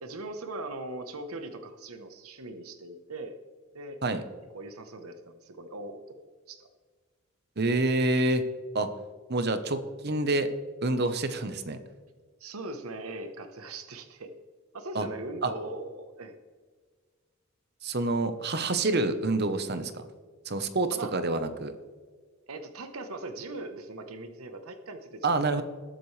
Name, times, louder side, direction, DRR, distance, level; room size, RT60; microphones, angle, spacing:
voice 1, 0.0-3.4 3.7-4.0 4.5-6.2 6.5-6.7 12.4-14.3 14.7-16.3 20.9-21.1 22.5-25.6, right 2 dB, 85° right, 7 dB, 1.1 m, -40 dB
voice 2, 7.6-8.4 8.7-8.9 9.3-10.5 10.8-11.8 14.9-15.1 15.4-15.5 17.8-20.0 20.4-21.7 25.2-25.6, right 2 dB, 50° right, 9 dB, 1.0 m, -27 dB
20.5 x 7.8 x 3.3 m, 1.5 s
head